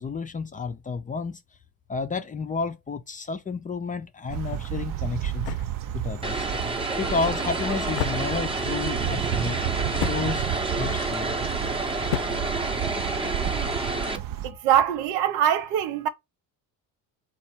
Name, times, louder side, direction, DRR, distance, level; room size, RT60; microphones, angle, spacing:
voice 1, 0.0-1.4 1.9-5.5 5.9-6.5 7.0-10.4 10.7-11.3, left 4 dB, 20° left, 0.4 m, -31 dB
sound 1, 4.3-14.5, right 11 dB, 55° right, 0.6 m, -32 dB
sound 2, 4.6-13.4, left 12 dB, 80° left, 0.6 m, -37 dB
Vehicle, 6.2-14.2, right 2 dB, 15° right, 0.7 m, -29 dB
voice 2, 14.4-16.1, right 10 dB, 85° right, 0.8 m, -23 dB
4.1 x 2.4 x 4.3 m
cardioid pair, 105°, 41 cm